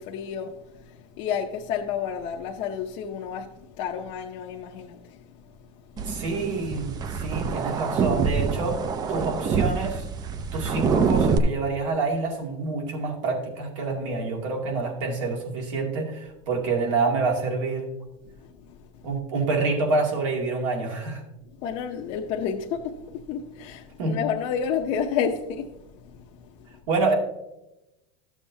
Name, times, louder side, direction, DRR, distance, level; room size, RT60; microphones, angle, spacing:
voice 1, 0.0-5.5 18.4-19.0 21.6-26.1 26.6-26.7, left 7 dB, 50° left, 0.7 m, -31 dB
sound 1, 6.0-11.4, right 5 dB, 25° right, 0.5 m, -26 dB
voice 2, 6.0-8.8 9.1-10.1 10.5-17.9 19.0-21.2 24.0-24.2 26.9-27.1, right 3 dB, 80° right, 2.2 m, -27 dB
12.0 x 7.2 x 2.7 m
supercardioid pair, 145°, 16 cm